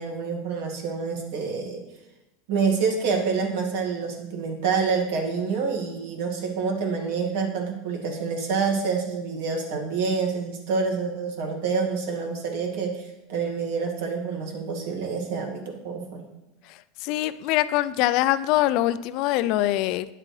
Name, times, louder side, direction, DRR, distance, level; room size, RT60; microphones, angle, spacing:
voice 1, 0.0-1.8 2.5-16.2, right 5 dB, 70° right, 1 dB, 1.9 m, -27 dB
voice 2, 16.7-20.1, left 15 dB, 55° left, 14 dB, 0.4 m, -24 dB
10.0 x 7.6 x 3.2 m, 0.97 s
supercardioid pair, 125°, 0 cm